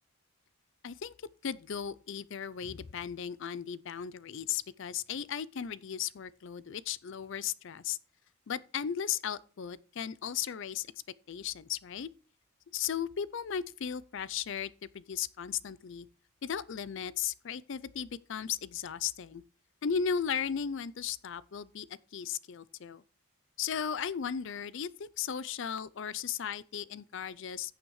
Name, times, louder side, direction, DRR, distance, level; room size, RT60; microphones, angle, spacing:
voice 1, 0.8-1.1 1.4-8.0 8.5-10.9 11.3-12.1 12.7-16.1 16.4-19.4 19.8-23.0 23.6-27.8, left 8 dB, 55° left, 0.4 m, -36 dB
14.0 x 7.1 x 3.1 m
head